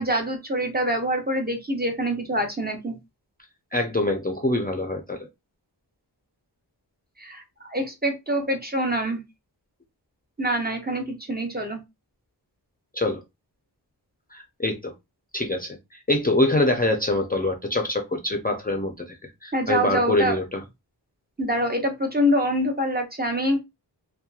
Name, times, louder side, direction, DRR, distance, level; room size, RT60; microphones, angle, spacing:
voice 1, 0.0-2.9 7.2-9.2 10.4-11.8 19.5-20.4 21.4-23.6, equal, 25° right, 0.6 m, -25 dB
voice 2, 3.7-5.3 12.9-13.2 14.3-14.9 15.3-19.2 19.4-20.6, left 2 dB, 20° left, 0.5 m, -24 dB
2.8 x 2.2 x 2.3 m
wide cardioid pair, 65°, 42 cm